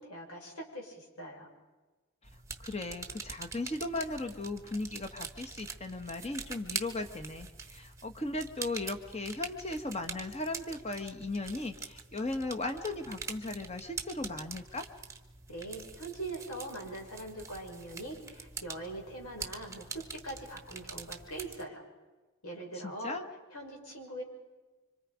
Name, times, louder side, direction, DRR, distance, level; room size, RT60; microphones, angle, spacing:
voice 1, 0.0-1.5 15.5-21.8 22.4-23.2 23.5-24.2, right 1 dB, 90° left, 0 dB, 6.2 m, -42 dB
sound 1, 2.2-21.6, right 5 dB, 15° right, 1.1 m, -45 dB
voice 2, 2.6-14.9 22.8-23.2, left 2 dB, 30° left, 7 dB, 1.5 m, -37 dB
26.5 x 25.5 x 5.1 m, 1.2 s
head